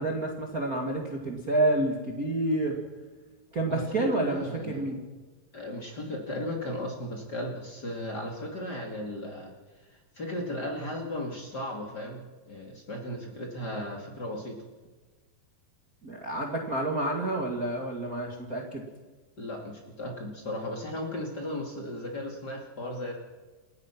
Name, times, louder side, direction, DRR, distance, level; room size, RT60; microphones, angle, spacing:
voice 1, 0.0-2.8 3.5-5.0 16.0-18.8, right 2 dB, 30° right, 1 dB, 1.9 m, -29 dB
voice 2, 3.7-4.8 5.5-9.5 9.9-14.6 19.4-23.1, left 1 dB, 30° left, 1 dB, 2.7 m, -36 dB
28.5 x 15.0 x 6.0 m, 1.3 s
omnidirectional pair, 4.1 m